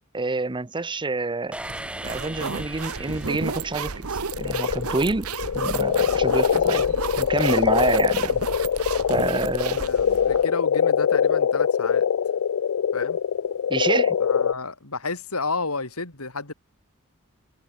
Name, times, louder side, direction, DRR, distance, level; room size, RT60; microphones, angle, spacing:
voice 1, 0.1-1.6 2.0-5.3 5.5-8.4 9.1-9.8 13.7-14.2, right 3 dB, 20° right, 0.8 m, -27 dB
sound 1, 1.5-4.4, right 1 dB, 5° right, 1.6 m, -39 dB
sound 2, 1.6-10.4, right 5 dB, 90° right, 1.3 m, -33 dB
sound 3, 4.3-14.5, left 8 dB, 65° left, 0.4 m, -23 dB
voice 2, 9.7-12.1 12.9-13.2 14.2-16.5, left 3 dB, 90° left, 4.4 m, -31 dB
head